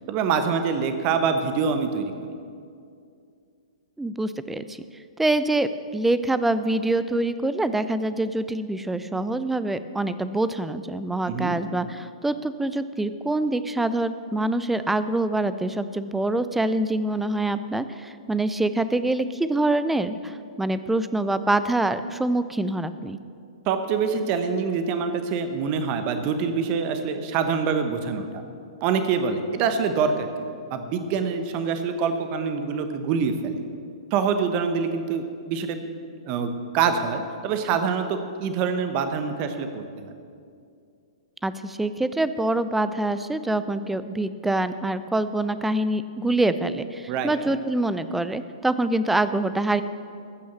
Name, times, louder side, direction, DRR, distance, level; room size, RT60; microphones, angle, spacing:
voice 1, 0.1-2.1 11.3-11.5 23.7-28.3 28.8-33.6 34.1-35.8 36.3-40.1 47.1-47.3, right 6 dB, 35° right, 8 dB, 1.1 m, -25 dB
voice 2, 4.0-4.8 5.2-23.2 41.4-49.8, right 2 dB, 5° right, 12 dB, 0.4 m, -25 dB
14.5 x 6.3 x 7.2 m, 2.4 s
figure-of-eight pair, 115°, 3 cm